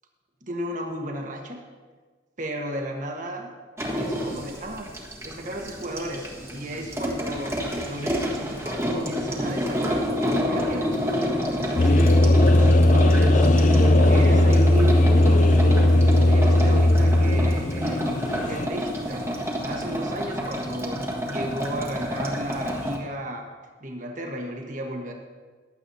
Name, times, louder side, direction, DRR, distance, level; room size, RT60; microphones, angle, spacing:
voice 1, 0.5-1.6 2.4-3.5 3.9-4.9 5.2-7.6 7.9-10.2 10.5-12.4 12.9-13.5 14.1-15.7 16.0-19.2 19.6-21.0 21.3-23.5 23.8-25.1, right 1 dB, 45° right, 1 dB, 1.4 m, -34 dB
sound 1, 3.8-23.0, equal, 15° right, 1.4 m, -29 dB
sound 2, 11.8-18.7, left 1 dB, 45° left, 0.4 m, -17 dB
15.5 x 10.5 x 2.8 m, 1.4 s
head